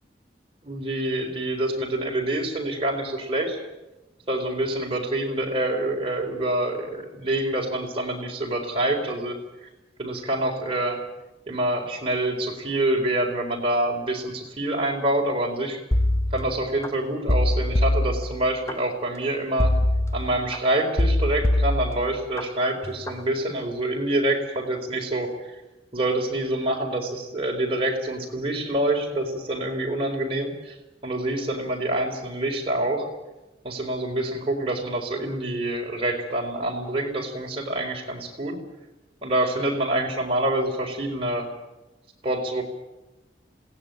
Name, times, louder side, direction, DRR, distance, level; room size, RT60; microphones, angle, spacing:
voice 1, 0.6-3.6 4.3-9.4 10.0-11.0 11.5-15.8 16.3-19.7 20.1-25.6 25.9-30.7 31.0-33.1 33.6-38.6 39.2-41.5 42.2-42.6, right 1 dB, 30° right, 0 dB, 4.2 m, -26 dB
sound 1, 15.9-16.9 17.3-18.7 19.6-20.6 21.0-22.4 22.8-23.2, left 1 dB, 15° left, 0.8 m, -23 dB
21.0 x 17.5 x 9.2 m, 1.0 s
head